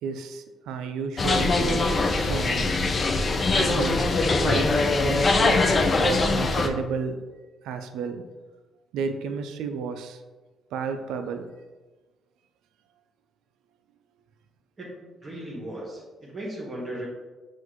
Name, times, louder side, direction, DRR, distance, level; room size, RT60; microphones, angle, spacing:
voice 1, 0.0-2.7 3.5-4.1 4.4-7.2 7.6-8.2 8.9-10.2 10.7-11.5, right 5 dB, 90° right, 8 dB, 0.3 m, -32 dB
sound 1, 1.2-6.7, left 3 dB, 40° left, 0.4 m, -22 dB
voice 2, 14.8-17.1, right 1 dB, 35° right, -5 dB, 1.4 m, -37 dB
5.8 x 2.5 x 3.0 m, 1.2 s
cardioid pair, 90°, 0 cm